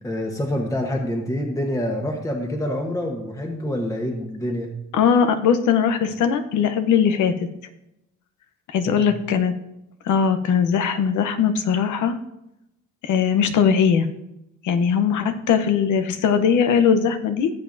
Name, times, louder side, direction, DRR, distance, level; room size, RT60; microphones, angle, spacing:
voice 1, 0.0-4.7 8.9-9.0, left 1 dB, 10° left, 2 dB, 1.2 m, -26 dB
voice 2, 4.9-7.3 8.7-9.5 10.0-12.2 13.0-14.1 14.6-17.5, left 7 dB, 75° left, 9 dB, 0.9 m, -20 dB
16.5 x 7.0 x 2.7 m, 0.89 s
cardioid pair, 90°, 30 cm